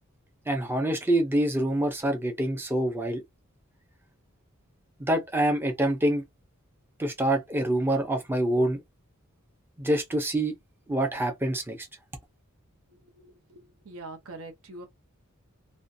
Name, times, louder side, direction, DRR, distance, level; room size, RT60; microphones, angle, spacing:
voice 1, 0.5-3.2 5.0-6.2 7.0-8.8 9.8-10.5 10.9-11.9, right 1 dB, 10° right, 0.6 m, -26 dB
voice 2, 13.1-14.9, right 2 dB, 65° right, 0.8 m, -44 dB
2.5 x 2.2 x 2.6 m
head